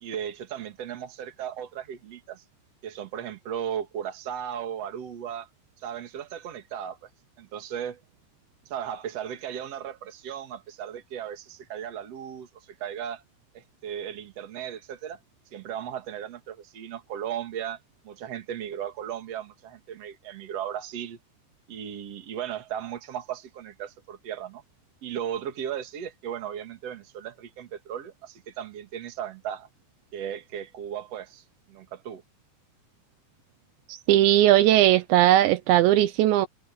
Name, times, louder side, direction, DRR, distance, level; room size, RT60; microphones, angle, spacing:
voice 1, 0.0-2.4 2.8-5.5 5.8-7.1 7.4-8.0 8.7-13.2 13.5-15.2 15.5-17.8 18.0-21.2 21.7-24.6 25.0-29.7 30.1-32.2, right 9 dB, 40° right, 2.8 m, -36 dB
voice 2, 34.1-36.5, right 14 dB, 80° right, 3.2 m, -18 dB
omnidirectional pair, 5.2 m